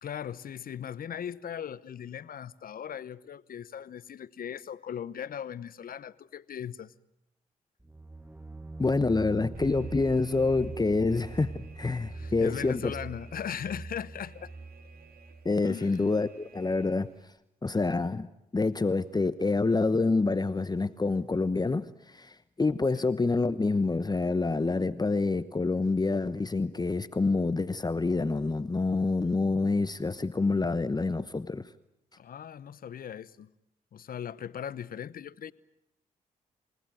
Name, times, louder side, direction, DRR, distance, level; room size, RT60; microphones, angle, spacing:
voice 1, 0.0-6.9 12.1-14.5 15.6-16.0 22.9-23.1 32.2-33.5 33.9-35.5, left 9 dB, 60° left, 0.9 m, -39 dB
sound 1, 7.8-15.5, right 2 dB, 10° right, 1.1 m, -44 dB
voice 2, 8.8-12.9 15.4-17.1 17.6-31.6, left 3 dB, 25° left, 1.0 m, -27 dB
Alarm, 9.5-17.2, right 8 dB, 65° right, 3.4 m, -50 dB
29.5 x 17.5 x 9.2 m
hypercardioid pair, 45°, 17 cm